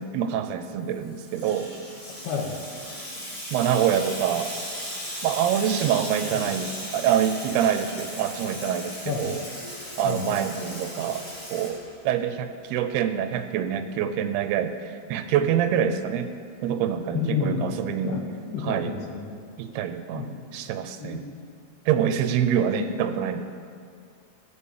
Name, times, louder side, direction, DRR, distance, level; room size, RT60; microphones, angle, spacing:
voice 1, 0.0-1.7 3.5-4.5 5.2-9.4 10.0-11.2 11.5-16.3 16.6-18.2 18.6-18.9 19.6-21.3 21.9-23.4, right 9 dB, 85° right, 9 dB, 2.7 m, -26 dB
Water tap faucet / Sink (filling or washing), 0.9-12.3, equal, 10° left, 2.3 m, -37 dB
voice 2, 17.1-17.7 18.0-18.2 18.5-19.3 20.1-20.3 21.0-21.3 22.8-22.9, left 6 dB, 75° left, 0 dB, 3.3 m, -30 dB
16.0 x 6.8 x 7.5 m, 2.3 s
omnidirectional pair, 4.5 m